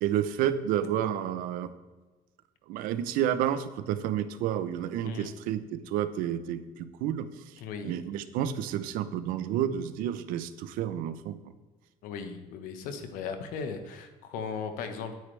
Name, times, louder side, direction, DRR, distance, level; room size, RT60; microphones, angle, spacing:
voice 1, 0.0-1.7 2.7-7.3 7.8-11.5, right 10 dB, 85° right, 12 dB, 0.7 m, -30 dB
voice 2, 7.6-8.0 12.0-15.2, left 5 dB, 85° left, 8 dB, 1.3 m, -37 dB
9.6 x 9.5 x 3.3 m, 1.3 s
cardioid pair, 120°, 14 cm